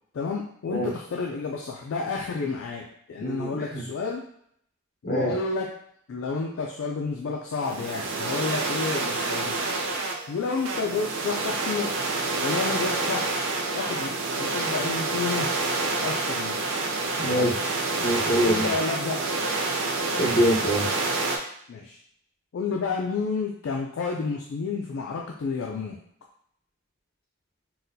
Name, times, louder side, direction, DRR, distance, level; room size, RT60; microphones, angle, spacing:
voice 1, 0.1-4.3 5.0-5.7 6.1-9.6 10.3-12.0 12.4-13.3 13.7-15.5 16.0-16.6 17.3-17.6 18.4-19.3 21.7-22.0 22.5-26.0, left 4 dB, 60° left, 0 dB, 0.3 m, -30 dB
voice 2, 3.2-3.8 5.0-5.3 17.2-17.5 18.0-18.7 20.2-20.9, equal, 45° left, -3 dB, 1.0 m, -24 dB
sound 1, 7.6-21.4, right 3 dB, 60° right, 0.5 m, -28 dB
4.0 x 2.2 x 2.6 m, 0.69 s
head